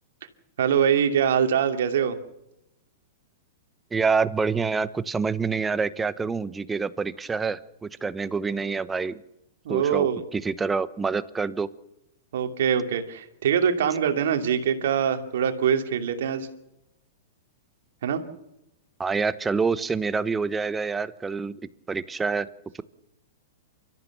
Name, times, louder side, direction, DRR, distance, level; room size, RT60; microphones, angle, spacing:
voice 1, 0.6-2.2 9.6-10.2 12.3-16.5 18.0-18.2, right 8 dB, 65° right, 7 dB, 2.6 m, -23 dB
voice 2, 3.9-9.2 9.7-10.1 10.3-11.7 19.0-21.6 21.9-22.5, right 5 dB, 15° right, 16 dB, 1.0 m, -26 dB
29.0 x 14.0 x 7.0 m, 0.88 s
hypercardioid pair, 110°, 0 cm